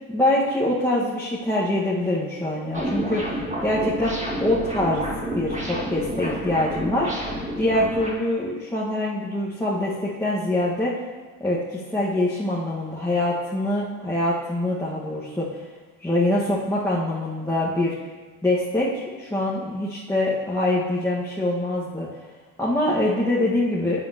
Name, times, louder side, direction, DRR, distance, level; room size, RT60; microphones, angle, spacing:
voice 1, 0.1-4.1 4.4-5.0 5.3-7.1 7.6-10.9 11.4-15.6 16.0-17.9 18.4-22.1 22.6-24.0, left 1 dB, 5° left, -8 dB, 1.7 m, -24 dB
sound 1, 2.7-8.1, equal, 15° right, 2.1 m, -29 dB
11.5 x 7.6 x 3.0 m, 1.4 s
hypercardioid pair, 65°, 42 cm